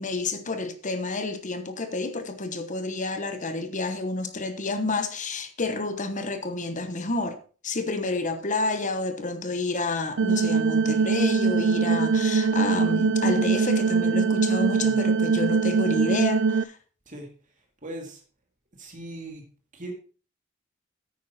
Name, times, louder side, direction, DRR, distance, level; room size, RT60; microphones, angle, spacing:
voice 1, 0.0-16.8, left 3 dB, 40° left, 1.1 m, -29 dB
sound 1, 10.2-16.6, right 5 dB, 65° right, 0.5 m, -22 dB
voice 2, 17.8-18.2 18.8-19.4 19.7-19.9, right 1 dB, 40° right, 2.4 m, -39 dB
9.5 x 9.3 x 4.2 m
head